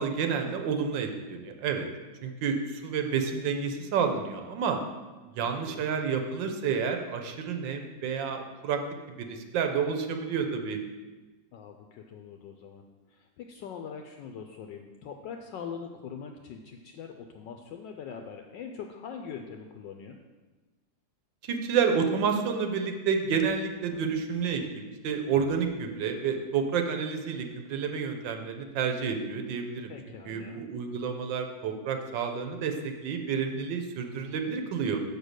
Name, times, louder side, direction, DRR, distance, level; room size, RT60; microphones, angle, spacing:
voice 1, 0.0-1.9 2.2-4.8 5.4-8.8 9.1-10.8 21.4-29.9 30.3-35.0, right 6 dB, 70° right, 5 dB, 1.4 m, -30 dB
voice 2, 5.4-5.9 11.5-12.8 13.1-20.2 29.9-30.7, left 6 dB, 75° left, 4 dB, 1.2 m, -42 dB
6.7 x 5.2 x 6.4 m, 1.2 s
omnidirectional pair, 2.1 m